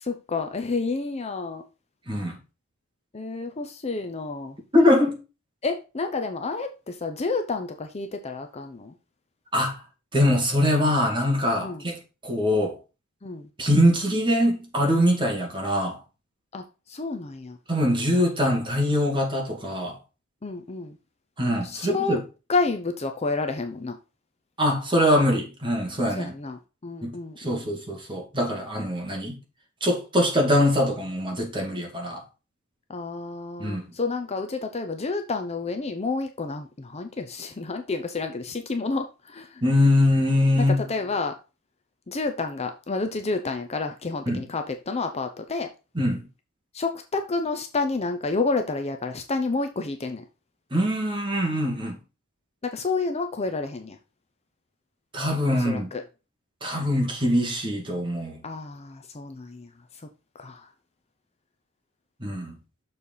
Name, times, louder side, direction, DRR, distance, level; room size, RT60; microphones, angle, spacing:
voice 1, 0.0-1.6 3.1-4.6 5.6-8.9 11.6-11.8 13.2-13.5 16.5-17.6 20.4-21.0 21.6-22.2 22.5-24.0 26.1-27.7 32.9-39.6 40.6-41.3 42.1-45.7 46.7-50.2 52.6-54.0 55.5-56.0 58.4-59.7 60.3-60.7, left 3 dB, 30° left, 0.7 m, -30 dB
voice 2, 2.1-2.4 4.7-5.2 9.5-9.8 10.1-12.8 13.6-16.0 17.7-20.0 21.4-22.2 24.6-26.3 27.0-29.4 29.8-32.2 33.6-33.8 39.6-40.8 44.3-44.4 46.0-46.2 50.7-52.0 55.1-55.9 56.6-58.4 62.2-62.5, left 1 dB, 25° right, 2.2 m, -23 dB
6.6 x 4.3 x 5.4 m
head